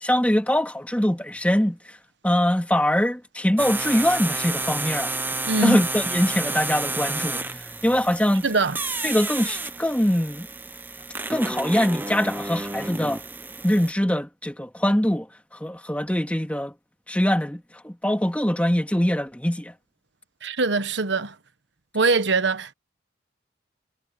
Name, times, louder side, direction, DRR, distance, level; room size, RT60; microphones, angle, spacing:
voice 1, 0.0-1.8 2.2-5.1 5.6-7.4 7.8-8.5 9.0-10.5 11.3-13.2 13.6-15.3 15.6-16.7 17.1-19.7, equal, 5° left, 2.0 m, -23 dB
sound 1, 3.6-13.9, right 2 dB, 10° right, 0.7 m, -31 dB
voice 2, 5.5-5.8 8.4-8.8 20.4-21.3 21.9-22.7, right 3 dB, 70° right, 1.2 m, -22 dB
head